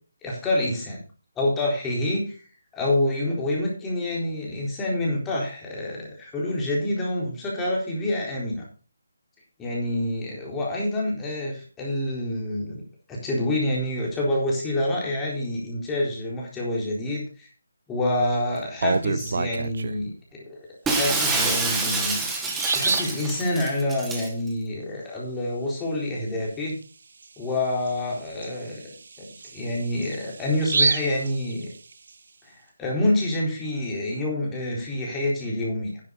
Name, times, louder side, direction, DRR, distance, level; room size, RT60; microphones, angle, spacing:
voice 1, 0.2-1.0 1.4-2.4 2.7-8.6 9.6-12.8 13.1-17.5 17.9-20.6 21.0-22.3 22.7-26.7 27.4-29.2 29.5-31.7 32.8-35.9, left 1 dB, 10° left, -3 dB, 4.1 m, -27 dB
Bird vocalization bird call bird song, 18.6-20.1 21.5-21.6 22.1-22.2 22.5-23.2 26.7-26.8 27.2-27.3 27.9-32.1, right 4 dB, 60° right, 0.9 m, -28 dB
Shatter, 20.9-24.3, right 3 dB, 5° right, 1.6 m, -26 dB
10.5 x 10.0 x 4.0 m, 0.37 s
hypercardioid pair, 165°, 0 cm